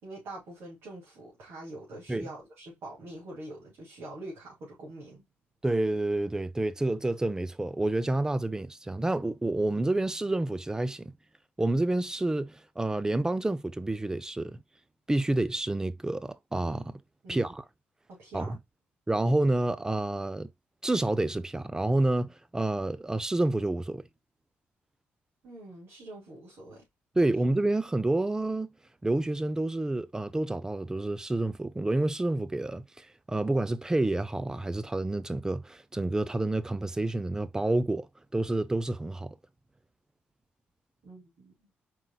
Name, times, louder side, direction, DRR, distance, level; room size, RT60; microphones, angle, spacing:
voice 1, 0.0-5.2 17.2-17.5 18.1-18.6 25.4-26.8 27.2-27.4 41.0-41.5, right 1 dB, 70° right, 2.5 m, -44 dB
voice 2, 5.6-11.1 11.6-14.6 15.1-17.0 17.3-17.6 18.3-18.6 19.1-20.5 20.8-24.0 27.2-28.7 29.0-38.1 38.3-39.4, right 2 dB, 15° right, 0.5 m, -29 dB
4.4 x 3.9 x 2.2 m
cardioid pair, 80°, 4 cm